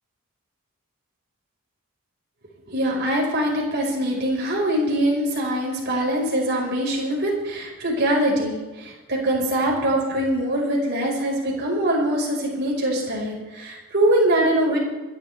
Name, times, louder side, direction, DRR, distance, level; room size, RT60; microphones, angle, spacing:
voice 1, 2.7-14.8, right 1 dB, 50° right, -2 dB, 5.0 m, -23 dB
28.5 x 11.5 x 3.4 m, 1.2 s
head